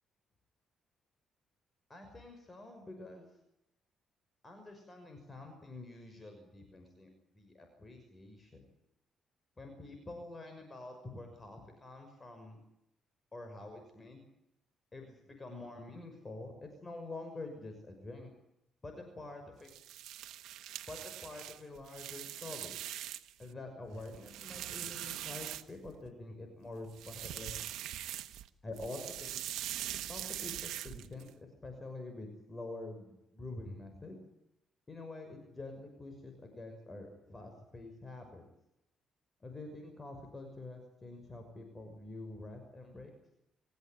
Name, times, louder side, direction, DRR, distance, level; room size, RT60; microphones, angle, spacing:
voice 1, 1.9-3.3 4.4-8.7 9.6-12.6 13.3-14.2 14.9-18.3 18.8-19.7 20.9-22.8 23.4-27.6 28.6-29.4 30.1-34.2 34.9-38.4 39.4-43.1, left 2 dB, 25° left, 5 dB, 6.1 m, -47 dB
sound 1, 19.6-23.4 23.8-26.1 26.9-28.5 28.7-31.3, right 12 dB, 85° right, 1.3 m, -42 dB
27.0 x 15.5 x 9.2 m, 0.84 s
cardioid pair, 90°, 0 cm